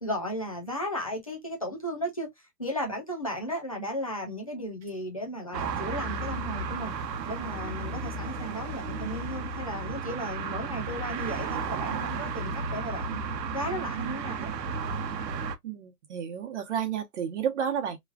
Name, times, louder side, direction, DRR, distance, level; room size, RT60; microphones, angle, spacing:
voice 1, 0.0-2.3 2.6-6.9 7.3-13.2 13.5-14.5, equal, 25° left, 0.4 m, -35 dB
sound 1, 5.5-15.6, right 4 dB, 90° right, 0.8 m, -33 dB
voice 2, 15.6-18.0, right 8 dB, 45° right, 0.9 m, -31 dB
3.1 x 2.3 x 2.3 m
hypercardioid pair, 160°, 49 cm